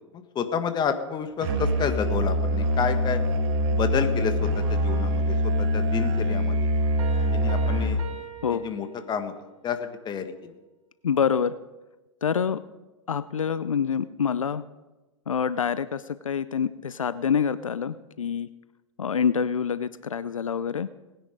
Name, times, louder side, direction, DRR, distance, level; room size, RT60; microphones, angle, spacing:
voice 1, 0.1-3.2 3.7-6.6 7.2-8.0 8.5-9.3 9.6-10.5, left 7 dB, 25° left, 8 dB, 1.6 m, -30 dB
Musical instrument, 1.4-8.2, equal, 50° right, 1.9 m, -24 dB
Piano, 7.0-9.5, right 7 dB, 70° right, 2.3 m, -41 dB
voice 2, 11.0-11.6 12.2-12.6 13.1-14.6 15.3-18.5 19.0-20.9, left 7 dB, 85° left, 15 dB, 0.5 m, -26 dB
19.0 x 10.5 x 5.1 m, 1.1 s
hypercardioid pair, 100°, 17 cm